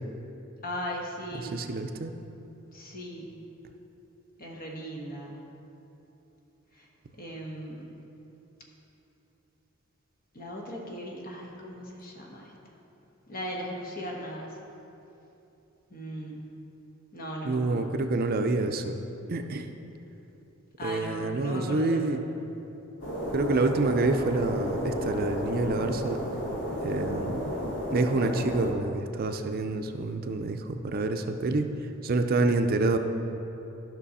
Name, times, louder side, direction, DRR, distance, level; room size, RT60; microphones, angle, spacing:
voice 1, 0.6-1.6 2.7-3.3 4.4-5.4 6.7-6.9 7.1-7.9 10.3-12.5 13.3-14.5 15.9-16.4 17.1-18.1 20.8-22.0, equal, 45° left, -1 dB, 1.3 m, -38 dB
voice 2, 1.4-2.1 17.4-19.0 19.3-19.7 20.8-22.2 23.3-26.2 26.8-27.5 27.9-31.7 32.0-33.0, right 2 dB, 45° right, 6 dB, 0.5 m, -27 dB
sound 1, 23.0-28.7, equal, 65° left, 1.8 m, -32 dB
12.5 x 6.1 x 4.2 m, 3.0 s
head